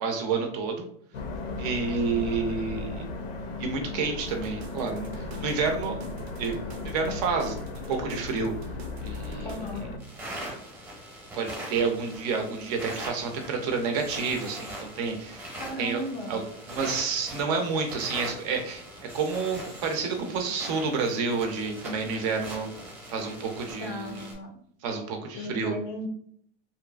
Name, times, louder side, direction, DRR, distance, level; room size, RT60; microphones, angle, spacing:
voice 1, 0.0-0.9 1.6-3.0 3.6-6.0 6.4-6.6 6.8-7.6 7.9-8.5 9.0-9.5 11.3-15.5 15.8-16.0 16.3-16.4 16.7-18.8 19.1-22.7 23.1-24.1 24.8-25.7, right 4 dB, 40° right, 4 dB, 0.5 m, -29 dB
sound 1, 1.1-10.0, left 3 dB, 75° left, 0.6 m, -36 dB
sound 2, 4.3-9.8, right 2 dB, 90° right, 0.5 m, -46 dB
voice 2, 9.4-9.9 15.6-16.4 23.8-24.6 25.3-26.1, left 1 dB, 30° left, 2 dB, 0.4 m, -36 dB
sound 3, 10.0-24.3, equal, 10° right, 0.7 m, -41 dB
2.7 x 2.4 x 2.2 m, 0.64 s
supercardioid pair, 150°, 31 cm